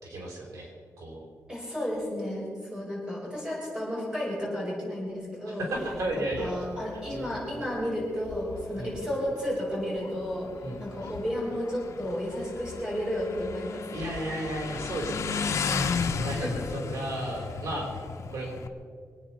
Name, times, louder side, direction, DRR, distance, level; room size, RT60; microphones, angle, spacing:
voice 1, 0.0-0.7 1.0-1.3 5.5-6.5 7.1-7.7 8.8-9.0 10.6-11.1 13.9-15.5 16.0-17.9 18.3-18.6, right 1 dB, 80° right, -1 dB, 4.3 m, -34 dB
voice 2, 1.5-2.4 2.7-5.7 6.2-10.5 10.8-13.9 16.2-16.6, equal, 15° right, -4 dB, 5.5 m, -32 dB
Motorcycle, 5.7-18.7, left 5 dB, 65° left, 1.1 m, -35 dB
24.5 x 9.3 x 6.1 m, 2.1 s
wide cardioid pair, 165°, 6 cm